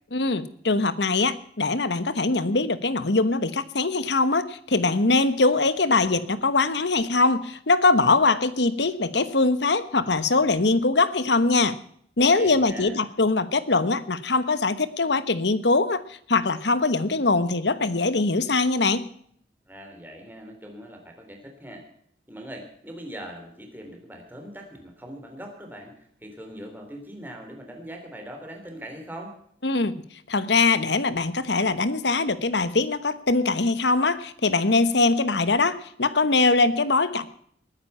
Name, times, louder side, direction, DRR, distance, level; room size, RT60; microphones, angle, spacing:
voice 1, 0.1-11.8 12.2-16.0 16.3-19.0 29.6-29.9 30.3-37.2, left 3 dB, 80° left, 13 dB, 1.2 m, -22 dB
voice 2, 12.2-13.0 19.7-21.9 22.3-29.4, equal, 10° right, 2 dB, 3.5 m, -41 dB
20.0 x 9.6 x 5.6 m, 0.64 s
head